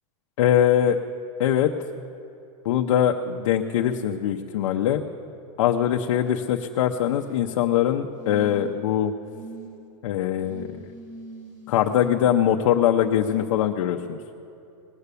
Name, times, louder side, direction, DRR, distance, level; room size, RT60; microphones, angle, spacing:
voice 1, 0.4-1.0 1.4-1.7 2.6-5.0 5.6-9.1 10.0-10.7 11.7-14.2, left 10 dB, 75° left, 3 dB, 0.7 m, -22 dB
sound 1, 6.9-7.4 8.1-8.8 9.2-9.7 10.4-12.0 13.2-13.3, right 1 dB, 20° right, 4.1 m, -42 dB
19.5 x 6.8 x 8.3 m, 2.7 s
supercardioid pair, 175°, 16 cm